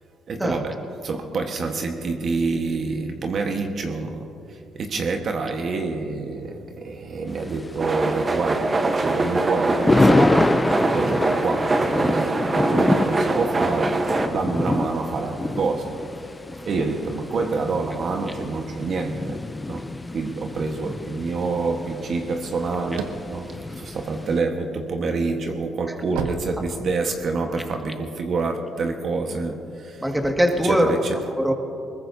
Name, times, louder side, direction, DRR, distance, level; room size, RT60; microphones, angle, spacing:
voice 1, 0.3-16.1 16.6-19.9 20.1-30.0 30.6-31.1, right 4 dB, 55° right, 1.3 m, -27 dB
Thunder, 7.3-24.4, left 2 dB, 20° left, 0.5 m, -26 dB
sound 1, 7.8-14.3, right 2 dB, 35° right, 1.1 m, -23 dB
sound 2, 22.9-24.6 25.1-27.3, right 5 dB, 90° right, 0.9 m, -33 dB
voice 2, 30.0-31.5, equal, 10° right, 1.9 m, -22 dB
21.5 x 20.0 x 2.8 m
supercardioid pair, 70°, 0 cm